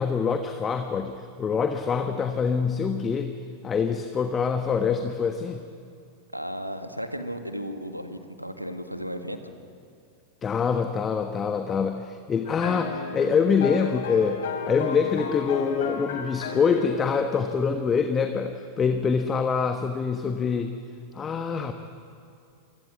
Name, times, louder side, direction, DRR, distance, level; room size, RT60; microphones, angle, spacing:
voice 1, 0.0-3.3 3.6-5.6 10.4-20.7 21.1-21.7, left 6 dB, 20° left, 7 dB, 1.3 m, -25 dB
voice 2, 6.3-9.5, equal, 90° right, 7 dB, 1.8 m, -34 dB
sound 1, 12.5-17.4, left 5 dB, 60° left, 3.8 m, -34 dB
28.0 x 24.5 x 7.7 m, 2.5 s
figure-of-eight pair, 90°, 0 cm